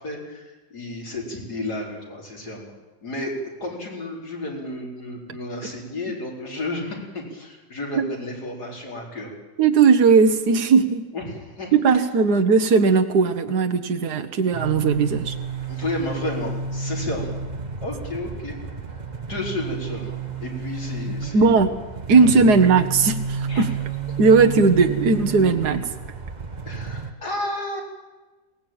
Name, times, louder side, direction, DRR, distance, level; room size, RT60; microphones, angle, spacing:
voice 1, 0.0-2.7 3.0-3.3 3.6-9.3 11.1-12.0 15.6-17.4 17.8-18.6 18.9-19.0 19.3-20.2 20.4-21.6 22.1-22.5 23.4-23.7 24.8-24.9 26.6-27.8, left 2 dB, 85° left, -2 dB, 4.8 m, -32 dB
voice 2, 9.6-11.1 11.7-15.4 21.3-21.7 22.1-23.7 24.2-25.9, right 4 dB, 85° right, 6 dB, 1.7 m, -17 dB
sound 1, 14.5-27.1, right 5 dB, 30° right, 1.2 m, -31 dB
22.0 x 18.5 x 8.9 m, 1.2 s
omnidirectional pair, 1.7 m